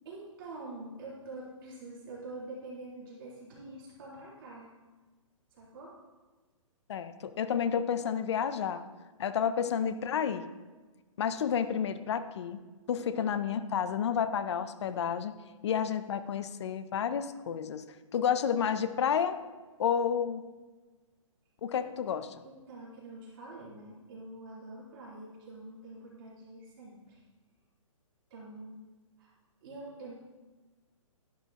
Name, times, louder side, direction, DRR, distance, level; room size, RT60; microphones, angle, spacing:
voice 1, 0.0-4.7 5.5-6.0 9.6-9.7 13.0-13.3 21.8-21.9 22.4-27.2 28.3-28.8 29.2-29.4 29.6-30.1, right 2 dB, 40° right, -6 dB, 3.8 m, -46 dB
voice 2, 6.9-8.8 9.2-10.5 11.2-12.6 12.9-15.3 15.6-17.8 18.1-19.4 19.8-20.5 21.6-22.3, left 8 dB, 55° left, 12 dB, 0.7 m, -30 dB
12.0 x 11.5 x 3.0 m, 1.3 s
hypercardioid pair, 160°, 18 cm